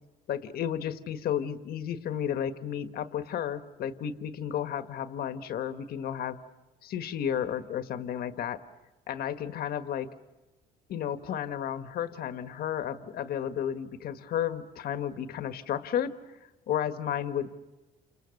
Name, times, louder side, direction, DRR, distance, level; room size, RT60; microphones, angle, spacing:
voice 1, 0.3-6.4 6.8-8.6 9.1-10.1 10.9-16.1 16.7-17.5, left 9 dB, 65° left, 9 dB, 1.6 m, -32 dB
29.0 x 28.5 x 6.6 m, 1.1 s
cardioid pair, 110°, 17 cm